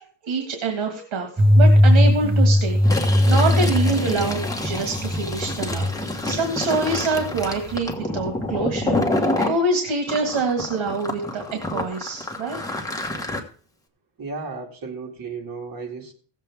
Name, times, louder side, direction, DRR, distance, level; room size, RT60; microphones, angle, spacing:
voice 1, 0.2-5.9 6.2-12.6 13.1-13.2, right 3 dB, 70° right, 3 dB, 1.9 m, -26 dB
sound 1, 1.4-6.4 6.7-7.8, left 1 dB, 10° right, 0.7 m, -18 dB
Fill (with liquid), 2.8-9.6 10.1-13.4, left 2 dB, 5° left, 1.4 m, -28 dB
voice 2, 14.2-16.1, right 4 dB, 45° right, 1 dB, 2.4 m, -34 dB
17.0 x 7.5 x 3.5 m, 0.42 s
cardioid pair, 135°, 48 cm